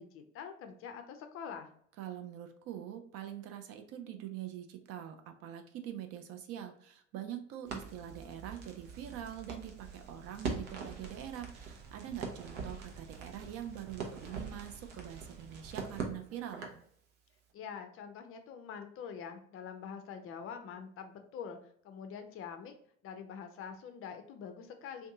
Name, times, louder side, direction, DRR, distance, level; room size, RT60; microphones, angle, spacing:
voice 1, 0.0-1.7 17.5-21.6 21.8-22.7 23.0-25.1, left 7 dB, 35° left, 7 dB, 0.5 m, -45 dB
voice 2, 2.0-16.6, right 10 dB, 40° right, 7 dB, 0.4 m, -44 dB
Crackle, 7.7-16.9, right 5 dB, 65° right, 0.7 m, -43 dB
2.6 x 2.3 x 3.6 m, 0.64 s
figure-of-eight pair, 65°, 37 cm